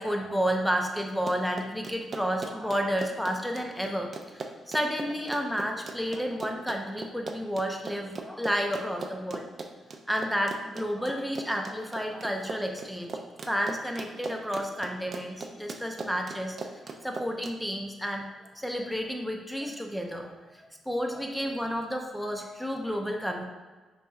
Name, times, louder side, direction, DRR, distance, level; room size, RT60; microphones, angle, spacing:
voice 1, 0.0-9.4 10.1-13.1 13.5-16.6 17.0-18.2 18.6-20.3 20.6-23.4, equal, ahead, 2 dB, 0.6 m, -31 dB
Run, 1.1-17.5, right 3 dB, 45° right, 0.4 m, -39 dB
5.3 x 2.7 x 2.4 m, 1.3 s
cardioid pair, 75°, 0 cm